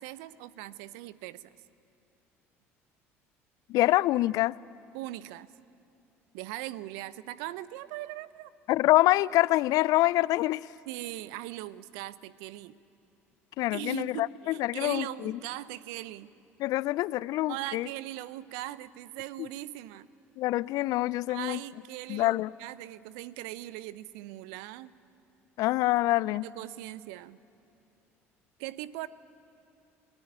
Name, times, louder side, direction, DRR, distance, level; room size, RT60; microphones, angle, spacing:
voice 1, 0.0-1.5 4.9-5.5 6.3-8.5 10.9-12.8 13.7-16.3 17.5-20.1 21.3-24.9 26.4-27.4 28.6-29.1, right 15 dB, 65° right, 17 dB, 0.7 m, -40 dB
voice 2, 3.7-4.5 8.7-10.7 13.6-15.4 16.6-17.9 19.4-19.5 20.4-21.6 22.1-22.5 25.6-26.5, left 17 dB, 60° left, 21 dB, 0.5 m, -26 dB
28.0 x 18.5 x 9.8 m, 2.8 s
figure-of-eight pair, 60°, 7 cm